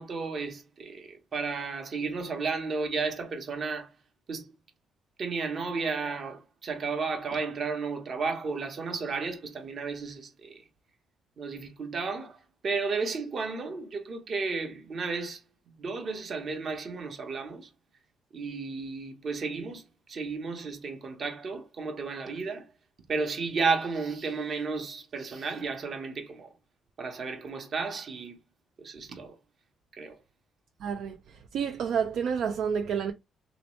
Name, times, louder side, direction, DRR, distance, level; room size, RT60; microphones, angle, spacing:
voice 1, 0.0-3.9 4.3-4.5 5.2-10.5 11.4-12.4 12.6-15.4 15.8-17.7 18.3-19.8 20.1-22.7 23.1-26.5 27.0-28.4 28.8-29.3 29.9-30.2, right 4 dB, 50° right, 1.0 m, -33 dB
voice 2, 30.8-33.1, right 7 dB, 70° right, 0.4 m, -30 dB
3.0 x 3.0 x 3.1 m
cardioid pair, 90°, 0 cm